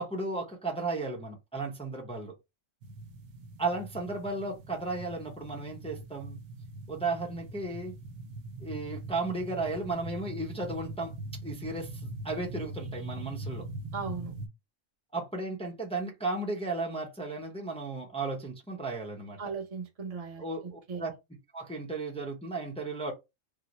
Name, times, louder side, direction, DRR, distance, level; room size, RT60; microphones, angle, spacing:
voice 1, 0.0-2.3 3.6-6.4 6.9-7.9 8.6-11.1 11.4-13.6 15.1-19.4 20.4-21.1 21.5-23.1, right 3 dB, 10° left, 0.3 m, -34 dB
sound 1, 2.8-14.5, right 2 dB, 75° right, 1.0 m, -42 dB
voice 2, 13.9-14.3 19.4-21.1, right 5 dB, 35° right, 0.7 m, -38 dB
3.8 x 2.0 x 3.0 m
omnidirectional pair, 1.4 m